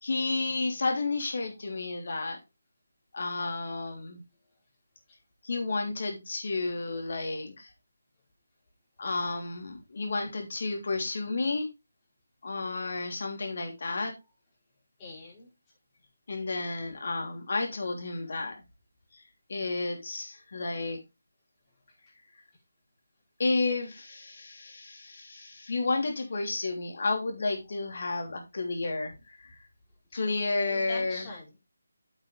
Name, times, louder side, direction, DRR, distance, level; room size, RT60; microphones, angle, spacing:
voice 1, 0.0-2.4 3.1-4.2 5.4-7.7 9.0-11.7 12.4-14.1 16.3-18.5 19.5-21.0 23.4-29.1 30.1-31.2, left 3 dB, 55° left, 3 dB, 3.3 m, -31 dB
voice 2, 15.0-15.5 30.1-30.4 30.7-31.6, left 2 dB, 20° left, -5 dB, 4.7 m, -44 dB
8.2 x 8.1 x 3.4 m, 0.24 s
figure-of-eight pair, 160°, 0 cm